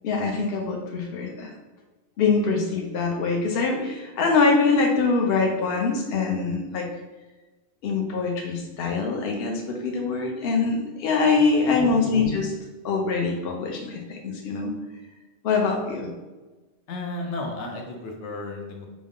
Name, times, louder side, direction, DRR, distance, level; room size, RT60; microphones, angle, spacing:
voice 1, 0.0-1.5 2.2-6.9 7.8-12.5 12.8-14.8 15.4-16.1, left 4 dB, 65° left, 1 dB, 0.9 m, -24 dB
voice 2, 16.9-18.9, left 2 dB, 90° left, 1 dB, 1.0 m, -33 dB
5.1 x 2.1 x 3.6 m, 1.2 s
omnidirectional pair, 1.2 m